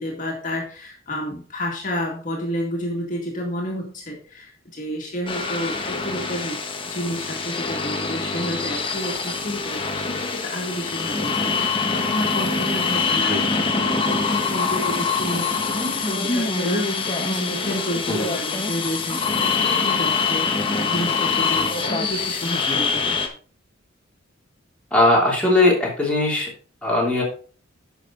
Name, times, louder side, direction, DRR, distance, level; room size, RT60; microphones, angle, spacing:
voice 1, 0.0-6.6 6.8-23.2, equal, 40° left, 0 dB, 2.1 m, -30 dB
sound 1, 5.3-23.3, left 4 dB, 25° left, 1.3 m, -24 dB
voice 2, 24.9-26.5 26.8-27.2, left 2 dB, 5° left, -4 dB, 3.0 m, -19 dB
10.5 x 6.6 x 3.9 m, 0.39 s
head